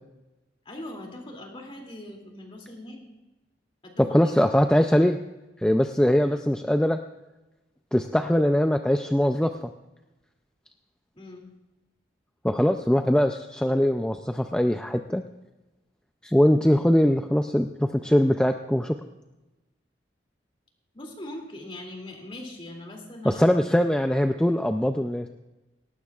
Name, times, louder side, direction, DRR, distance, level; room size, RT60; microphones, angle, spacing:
voice 1, 0.6-3.1 3.8-4.1 4.5-4.6 11.1-11.5 20.9-23.4, left 1 dB, 30° left, 1 dB, 2.6 m, -41 dB
voice 2, 4.0-5.2 5.6-7.0 7.9-9.7 12.4-15.2 16.2-18.9 23.2-25.3, equal, 5° left, 6 dB, 0.4 m, -22 dB
18.5 x 18.0 x 2.4 m, 1.1 s
head